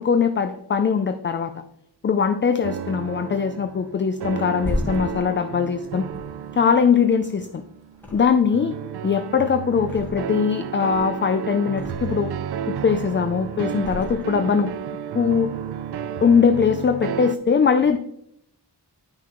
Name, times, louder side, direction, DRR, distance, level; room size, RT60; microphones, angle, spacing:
voice 1, 0.0-1.5 2.0-6.1 6.6-7.6 8.1-8.7 9.0-12.3 12.7-14.7 15.1-15.5 16.2-18.0, left 6 dB, 30° left, 8 dB, 0.4 m, -21 dB
sound 1, 2.6-17.4, right 8 dB, 70° right, 0.5 m, -32 dB
Thump thud, 4.2-7.5 7.9-8.7 9.0-10.5 10.8-12.3 12.7-13.2 13.8-14.8 15.1-15.3, left 1 dB, 5° left, 1.5 m, -34 dB
10.5 x 5.9 x 3.0 m, 0.76 s
wide cardioid pair, 120°, 42 cm